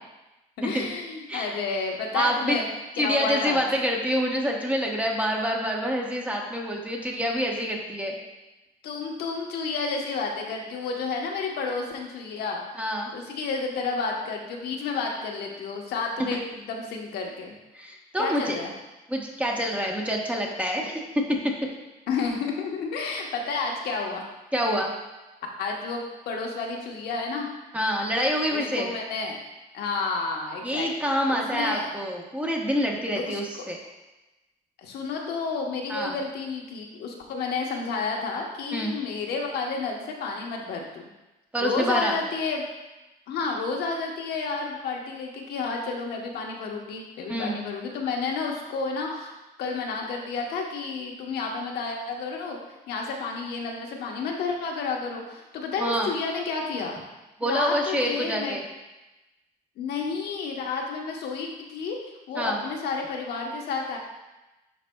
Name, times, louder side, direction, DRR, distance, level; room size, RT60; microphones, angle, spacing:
voice 1, 0.6-2.7 3.0-3.6 8.8-12.6 13.1-17.5 18.2-18.7 22.1-24.2 25.6-27.5 28.5-29.4 29.7-30.9 31.3-31.9 33.3-33.6 34.8-41.1 41.6-42.7 43.3-49.3 49.6-57.0 57.4-58.6 59.8-62.0 62.3-64.0, left 4 dB, 75° left, 1 dB, 1.1 m, -31 dB
voice 2, 2.1-2.6 3.0-8.2 12.8-13.1 17.7-18.6 19.1-21.0 24.5-24.9 27.7-28.9 30.6-33.8 35.9-36.1 38.7-39.0 41.5-42.2 47.3-47.6 55.8-56.1 57.4-58.6 62.3-62.6, equal, 10° right, 0 dB, 1.0 m, -27 dB
10.5 x 4.1 x 2.3 m, 1.0 s
cardioid pair, 110°, 17 cm